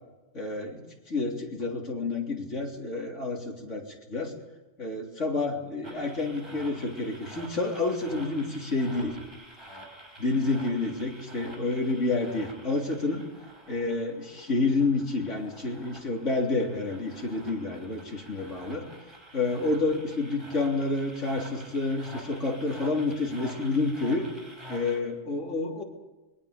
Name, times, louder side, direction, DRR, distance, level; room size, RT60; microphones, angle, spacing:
voice 1, 0.3-4.3 4.8-9.2 10.2-13.2 13.7-18.9 19.3-24.3 24.7-25.8, left 3 dB, 80° left, 0 dB, 3.8 m, -29 dB
sound 1, 5.8-25.0, right 1 dB, 20° right, 4.5 m, -47 dB
26.5 x 22.5 x 5.1 m, 1.1 s
omnidirectional pair, 1.2 m